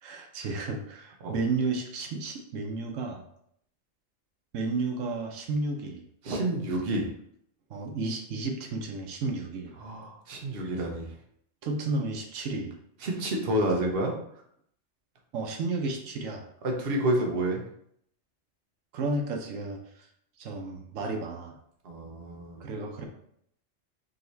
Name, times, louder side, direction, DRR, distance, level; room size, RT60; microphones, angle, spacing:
voice 1, 0.0-3.2 4.5-6.0 7.7-9.8 11.6-12.8 15.3-16.5 18.9-20.1 20.4-21.6 22.6-23.1, right 3 dB, 90° right, 3 dB, 1.0 m, -32 dB
voice 2, 6.2-7.1 9.8-11.1 13.0-14.1 16.6-17.6 21.8-22.7, right 1 dB, 50° right, 0 dB, 1.0 m, -29 dB
5.1 x 2.8 x 3.2 m, 0.71 s
omnidirectional pair, 1.3 m